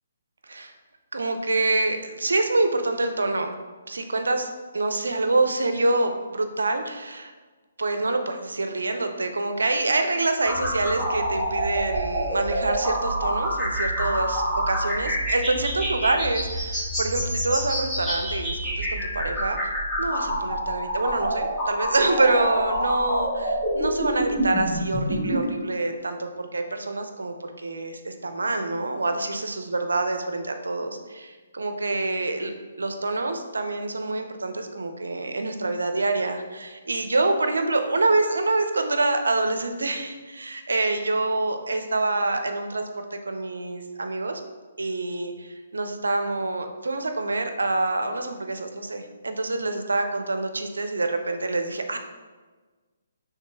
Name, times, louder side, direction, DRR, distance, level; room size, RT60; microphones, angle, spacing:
voice 1, 1.1-3.5 3.9-7.3 7.8-16.6 17.0-32.5 32.8-44.4 44.8-52.0, right 2 dB, 85° right, 6 dB, 0.5 m, -26 dB
sound 1, 10.4-25.4, equal, 5° right, 1.5 m, -27 dB
5.6 x 3.5 x 2.3 m, 1.3 s
hypercardioid pair, 145°, 0 cm